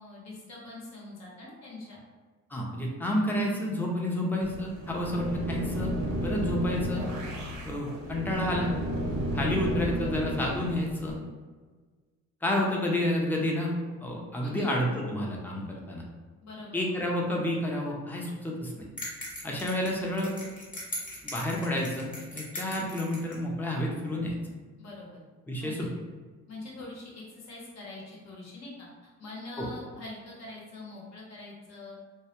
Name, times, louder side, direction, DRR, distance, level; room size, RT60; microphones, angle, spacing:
voice 1, 0.0-2.0 14.4-14.7 16.4-17.0 24.8-25.2 25.6-25.8 26.5-28.9 29.2-32.0, left 2 dB, 60° left, -4 dB, 0.9 m, -43 dB
voice 2, 2.5-5.9 6.2-7.1 7.6-8.7 9.3-11.2 12.4-13.7 14.0-16.0 16.7-18.8 19.4-20.4 21.2-24.3 25.5-25.9 29.6-29.7, left 1 dB, 5° left, -2 dB, 0.4 m, -30 dB
sound 1, 4.4-11.2, right 1 dB, 65° right, 0.7 m, -33 dB
sound 2, 19.0-23.4, left 1 dB, 25° left, 0.9 m, -40 dB
2.2 x 2.1 x 2.8 m, 1.4 s
cardioid pair, 90°, 30 cm